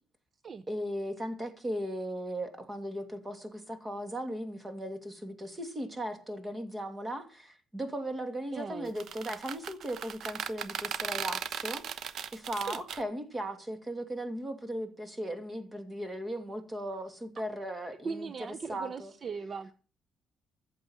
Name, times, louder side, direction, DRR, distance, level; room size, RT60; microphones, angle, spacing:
voice 1, 0.7-19.1, right 1 dB, 15° right, 2.6 m, -37 dB
voice 2, 8.5-8.9 12.7-12.8 18.0-19.7, right 5 dB, 40° right, 0.6 m, -38 dB
sound 1, 8.9-13.0, right 8 dB, 65° right, 1.0 m, -37 dB
14.5 x 7.6 x 7.4 m
cardioid pair, 125°, 0 cm